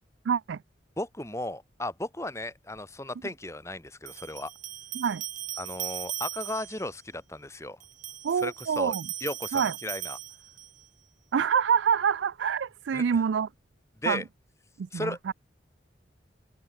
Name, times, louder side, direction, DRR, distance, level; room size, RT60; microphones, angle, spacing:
voice 1, 0.3-0.6 4.9-5.2 8.2-9.0 9.5-9.7 11.3-13.5 14.1-14.2 14.8-15.3, right 7 dB, 75° right, 0.4 m, -26 dB
voice 2, 1.0-4.5 5.6-7.8 8.4-8.9 9.2-10.2 12.9-13.2 14.0-14.2 14.9-15.3, left 1 dB, 15° left, 4.5 m, -35 dB
sound 1, 2.8-2.9 4.1-6.9 7.8-10.9, right 14 dB, 45° right, 3.2 m, -38 dB
open air
head